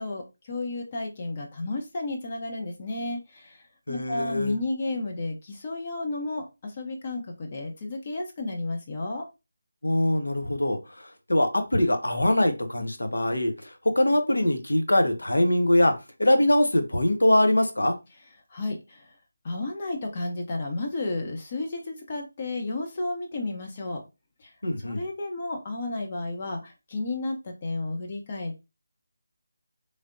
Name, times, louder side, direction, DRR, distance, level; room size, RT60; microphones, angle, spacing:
voice 1, 0.0-9.3 18.5-19.2 19.4-24.0 24.4-24.5 24.8-28.6, left 2 dB, 35° left, 2 dB, 0.6 m, -32 dB
voice 2, 3.9-4.6 9.8-15.9 16.2-17.9 24.6-25.0, left 1 dB, 90° left, 6 dB, 0.7 m, -23 dB
3.2 x 2.7 x 2.5 m, 0.26 s
figure-of-eight pair, 165°, 0 cm